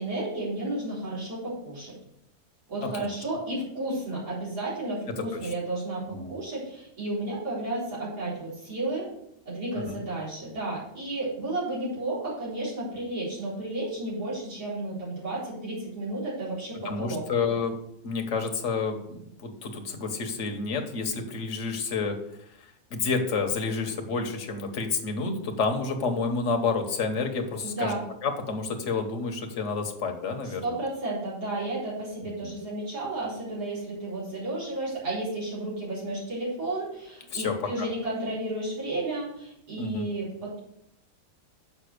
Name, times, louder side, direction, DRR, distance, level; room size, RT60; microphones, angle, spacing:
voice 1, 0.0-1.9 2.7-9.1 9.5-17.2 27.6-28.0 30.4-40.6, right 2 dB, 90° right, -9 dB, 4.6 m, -32 dB
voice 2, 16.8-17.8 18.0-22.2 22.9-27.9 28.2-30.8 32.4-32.5 37.3-37.9 39.8-40.0, left 4 dB, 50° left, 4 dB, 1.4 m, -29 dB
6.9 x 5.6 x 6.6 m, 0.75 s
omnidirectional pair, 1.7 m